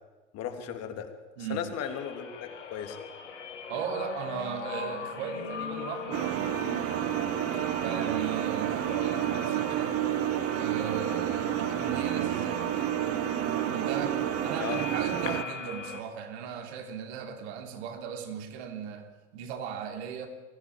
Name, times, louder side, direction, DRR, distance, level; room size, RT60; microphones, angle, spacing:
voice 1, 0.3-1.1 1.4-3.0 14.6-14.8, left 8 dB, 40° left, 6 dB, 3.1 m, -36 dB
voice 2, 1.4-1.7 3.7-6.6 7.8-10.0 10.6-12.8 13.6-20.3, right 7 dB, 60° right, 5 dB, 3.4 m, -37 dB
sound 1, 1.8-16.0, left 5 dB, 75° left, 2.8 m, -39 dB
sound 2, 6.1-15.4, right 14 dB, 40° right, 1.0 m, -30 dB
23.0 x 15.5 x 9.0 m, 1.2 s
figure-of-eight pair, 80°, 37 cm